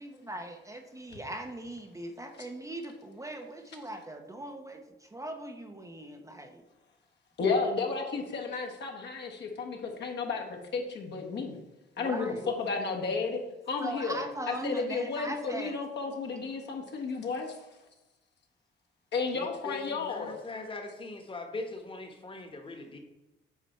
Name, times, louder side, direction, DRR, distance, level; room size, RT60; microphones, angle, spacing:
voice 1, 0.0-6.6 12.0-12.5 13.8-15.8, right 1 dB, 15° right, 5 dB, 0.7 m, -40 dB
voice 2, 7.4-11.6 12.0-13.4 13.7-14.2 14.5-17.7 19.1-20.4, left 4 dB, 60° left, 1 dB, 1.4 m, -32 dB
voice 3, 19.3-23.0, left 2 dB, 25° left, 5 dB, 1.3 m, -41 dB
8.3 x 4.2 x 4.3 m, 1.0 s
cardioid pair, 90°, 20 cm